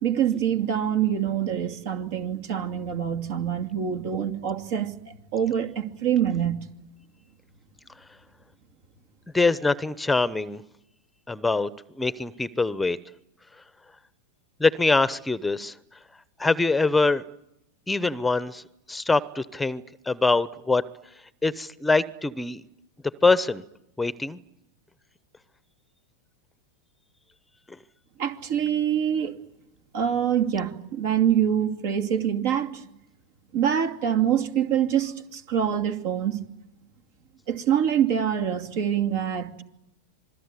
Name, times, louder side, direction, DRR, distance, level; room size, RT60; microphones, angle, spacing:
voice 1, 0.0-4.9 5.3-6.6 28.2-29.4 29.9-32.8 33.5-36.4 37.5-39.6, right 9 dB, 60° right, 2.6 m, -25 dB
voice 2, 9.3-10.6 11.3-11.7 12.0-13.0 14.6-15.7 16.4-17.2 17.9-18.6 18.9-20.8 21.4-22.6 23.2-23.6 24.0-24.4, left 3 dB, 10° left, 0.9 m, -23 dB
26.5 x 21.0 x 9.8 m
hypercardioid pair, 100°, 0 cm